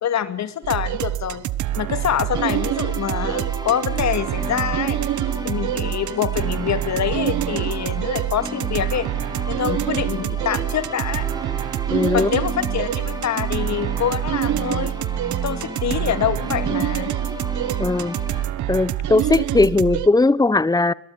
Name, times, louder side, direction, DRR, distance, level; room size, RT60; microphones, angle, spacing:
voice 1, 0.0-1.5 1.7-5.0 5.4-9.1 9.5-11.3 12.1-14.9 15.4-17.1, left 9 dB, 65° left, 2.5 m, -25 dB
sound 1, 0.6-20.1, right 12 dB, 75° right, 1.1 m, -26 dB
sound 2, 2.3-18.4, right 1 dB, 15° right, 7.2 m, -34 dB
voice 2, 11.9-12.3 17.8-18.2 18.7-20.9, left 3 dB, 10° left, 1.0 m, -18 dB
21.5 x 21.5 x 9.7 m
cardioid pair, 90°, 30 cm